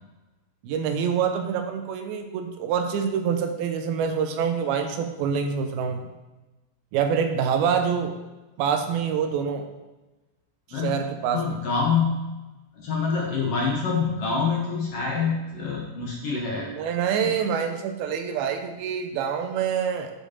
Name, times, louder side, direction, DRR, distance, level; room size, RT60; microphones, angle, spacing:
voice 1, 0.6-6.1 6.9-8.1 8.6-9.7 10.7-11.6 16.6-20.1, right 7 dB, 85° right, 6 dB, 2.6 m, -26 dB
voice 2, 11.3-12.3 12.8-16.7 17.2-17.4, left 5 dB, 65° left, -3 dB, 1.6 m, -26 dB
8.7 x 5.2 x 4.3 m, 1.1 s
omnidirectional pair, 4.2 m